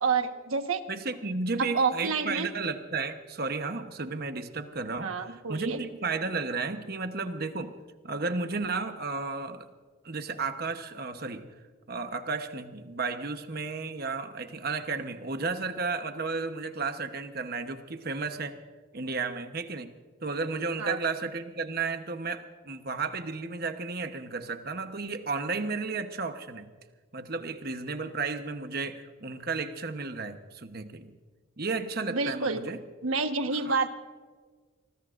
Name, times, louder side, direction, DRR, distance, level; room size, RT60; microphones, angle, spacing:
voice 1, 0.0-0.8 1.6-2.5 5.0-5.8 20.8-21.0 32.1-32.6 33.0-33.9, right 4 dB, 90° right, 6 dB, 1.4 m, -28 dB
voice 2, 0.9-7.8 8.0-9.7 10.0-11.5 11.9-18.6 18.9-19.9 20.2-26.7 27.1-31.1 31.6-32.8 33.5-33.7, right 4 dB, 45° right, 8 dB, 1.0 m, -33 dB
25.5 x 20.0 x 2.6 m, 1.5 s
head